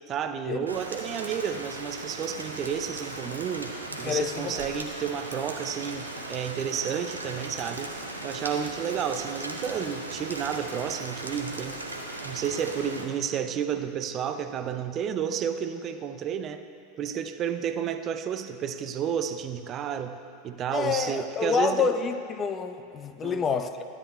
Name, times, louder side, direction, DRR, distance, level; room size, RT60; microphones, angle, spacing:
voice 1, 0.1-3.7 4.0-7.9 8.2-11.8 12.2-16.6 17.0-20.1 20.4-21.9 23.2-23.5, right 8 dB, 35° right, 9 dB, 0.4 m, -31 dB
Rain, 0.7-13.0, right 2 dB, 85° right, 0.6 m, -37 dB
voice 2, 4.0-4.7 20.7-23.8, left 6 dB, 30° left, 9 dB, 0.4 m, -28 dB
12.5 x 8.7 x 2.2 m, 2.4 s
figure-of-eight pair, 85°, 0 cm